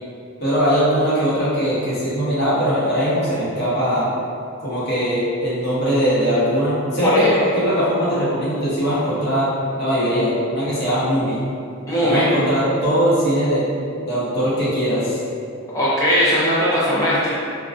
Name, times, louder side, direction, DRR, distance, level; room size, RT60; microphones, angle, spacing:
voice 1, 0.4-4.1 4.6-7.3 7.6-9.5 9.8-11.4 12.0-13.7 14.0-15.2, equal, 50° left, -10 dB, 0.7 m, -20 dB
voice 2, 7.0-7.3 11.9-12.3 15.7-17.3, equal, 15° left, -10 dB, 0.4 m, -18 dB
2.4 x 2.1 x 2.4 m, 2.4 s
head